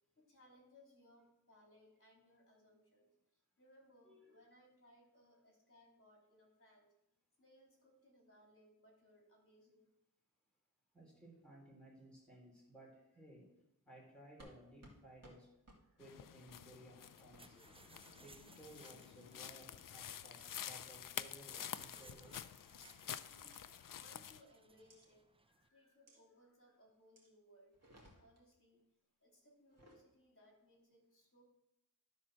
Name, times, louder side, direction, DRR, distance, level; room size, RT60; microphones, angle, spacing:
voice 1, 0.1-6.9 7.4-9.9 23.2-23.5 24.0-25.2 25.7-28.8 29.2-31.4, equal, 35° left, -1 dB, 3.3 m, -67 dB
voice 2, 4.0-4.5 10.9-13.6 13.8-15.5 15.8-22.5 25.6-26.8, right 1 dB, 5° left, -3 dB, 3.8 m, -60 dB
sound 1, 14.4-14.6 14.8-15.0 15.2-15.4 15.7-15.8 16.5-16.6 17.3-17.4 18.4-18.7 19.3-19.7 20.1-20.4 21.2-21.5 22.3-22.4 22.8-22.9 23.5-23.6 24.9-25.1 26.1-26.2 27.2-27.3 27.7-28.4 29.6-30.0, right 1 dB, 45° right, 2.2 m, -63 dB
sound 2, 16.0-24.4, left 9 dB, 60° left, 0.5 m, -49 dB
sound 3, 17.1-25.7, right 2 dB, 15° right, 0.6 m, -65 dB
12.0 x 4.3 x 6.2 m, 0.88 s
wide cardioid pair, 80°, 36 cm